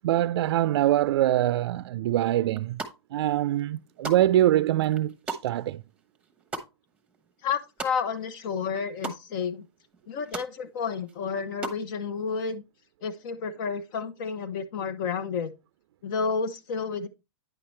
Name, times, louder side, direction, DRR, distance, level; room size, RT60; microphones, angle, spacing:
voice 1, 0.0-2.8 3.1-5.8, right 13 dB, 75° right, 0.4 m, -24 dB
sound 1, 2.5-3.2 3.6-8.4 8.6-9.2 9.6-9.7 9.9-10.5 10.9-11.8, right 3 dB, 10° right, 1.0 m, -38 dB
voice 2, 7.4-9.7 10.1-12.6 13.0-15.5 16.0-17.1, left 5 dB, 55° left, 0.9 m, -31 dB
9.5 x 5.7 x 3.2 m
hypercardioid pair, 140°, 14 cm